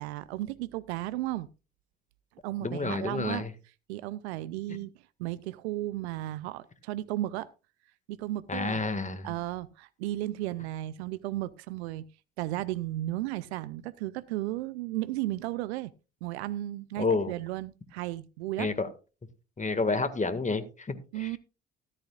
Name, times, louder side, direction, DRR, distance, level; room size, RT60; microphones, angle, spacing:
voice 1, 0.0-1.5 2.4-3.4 3.9-4.9 5.2-7.5 8.1-8.8 9.2-12.1 12.4-15.9 16.2-18.7 21.1-21.4, right 15 dB, 85° right, 0.5 m, -34 dB
voice 2, 2.6-3.5 4.7-4.8 8.5-9.3 17.0-17.3 18.6-18.9 19.6-21.4, left 3 dB, 25° left, 1.8 m, -30 dB
14.0 x 13.0 x 2.4 m
hypercardioid pair, 50°, 32 cm